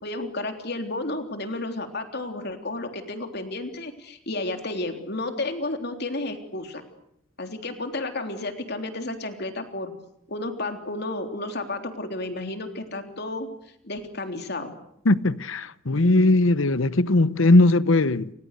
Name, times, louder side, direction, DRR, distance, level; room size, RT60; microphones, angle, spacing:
voice 1, 0.0-6.8 7.4-9.9 10.3-13.5 13.8-14.8, left 2 dB, 50° left, 3.5 m, -32 dB
voice 2, 15.0-18.3, left 2 dB, 75° left, 1.0 m, -19 dB
29.5 x 26.5 x 6.8 m
head